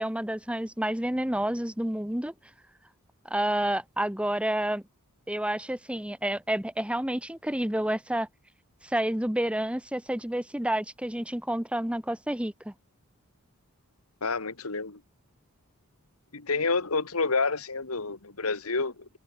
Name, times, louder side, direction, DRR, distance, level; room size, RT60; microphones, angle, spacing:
voice 1, 0.0-2.3 3.3-4.8 5.3-8.3 8.8-12.7, right 1 dB, 5° right, 1.2 m, -29 dB
voice 2, 14.2-15.0 16.3-19.1, left 3 dB, 70° left, 2.0 m, -29 dB
head